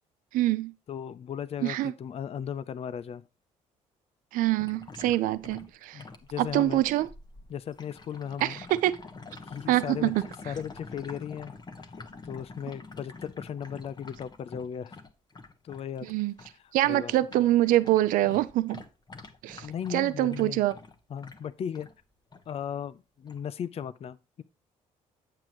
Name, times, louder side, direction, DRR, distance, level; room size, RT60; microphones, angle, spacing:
voice 1, 0.3-0.7 1.6-1.9 4.3-6.0 6.4-7.1 8.4-8.9 9.7-10.2 16.0-16.3 16.7-18.8 19.4-19.7 19.9-20.7, right 15 dB, 80° right, 0.5 m, -25 dB
voice 2, 0.9-3.3 5.9-6.8 7.5-8.6 9.4-10.1 10.4-11.5 11.8-12.0 12.2-15.0 15.6-16.1 16.6-17.1 19.6-20.6 21.1-21.9 22.5-24.4, left 8 dB, 45° left, 0.5 m, -36 dB
sound 1, 4.6-16.5 16.8-21.9 22.3-22.6 23.3-23.4, left 3 dB, 30° left, 1.4 m, -47 dB
8.4 x 7.7 x 3.0 m
cardioid pair, 80°, 14 cm